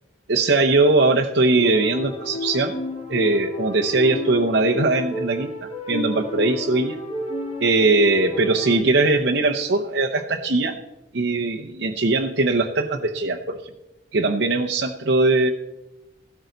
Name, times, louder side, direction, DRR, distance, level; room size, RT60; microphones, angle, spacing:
voice 1, 0.3-2.8 3.1-7.0 7.6-10.8 11.1-13.6 14.1-15.5, right 2 dB, 70° right, 0 dB, 0.9 m, -20 dB
sound 1, 1.6-8.8, left 2 dB, 35° left, 1.9 m, -31 dB
16.0 x 13.5 x 4.0 m, 1.0 s
head